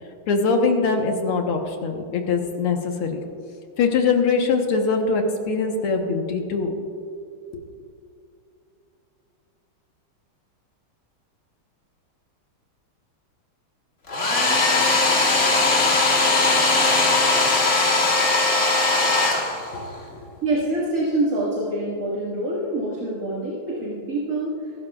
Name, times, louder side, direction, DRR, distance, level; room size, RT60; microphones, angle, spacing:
voice 1, 0.3-3.2 3.8-6.7 19.7-20.2, left 4 dB, 90° left, 3 dB, 2.2 m, -22 dB
Domestic sounds home sounds, 14.1-19.9, left 3 dB, 35° left, 1.7 m, -19 dB
voice 2, 20.4-24.7, right 1 dB, 40° right, -6 dB, 2.3 m, -25 dB
23.0 x 12.5 x 2.4 m, 2.5 s
omnidirectional pair, 2.3 m